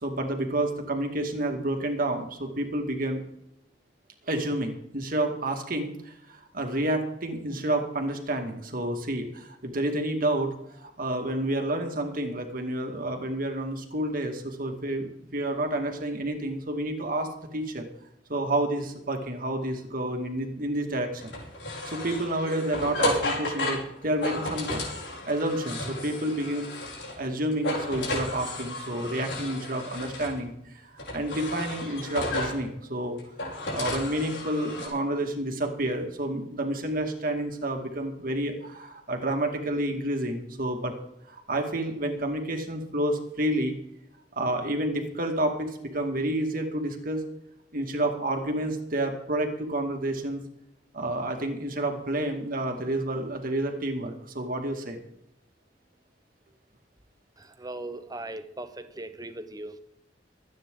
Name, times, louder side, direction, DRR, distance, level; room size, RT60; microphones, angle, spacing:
voice 1, 0.0-3.2 4.3-17.9 18.3-21.3 21.8-25.0 25.3-33.2 33.7-40.9 41.3-43.7 44.4-47.2 47.7-50.4 50.9-55.0, right 1 dB, 55° right, 3 dB, 2.3 m, -29 dB
sound 1, 21.2-27.3 27.5-30.4 31.0-32.6 33.2-34.9, left 1 dB, 90° left, 5.3 m, -33 dB
voice 2, 57.4-59.8, right 2 dB, 20° right, 10 dB, 1.0 m, -39 dB
24.5 x 9.4 x 3.9 m, 0.81 s
head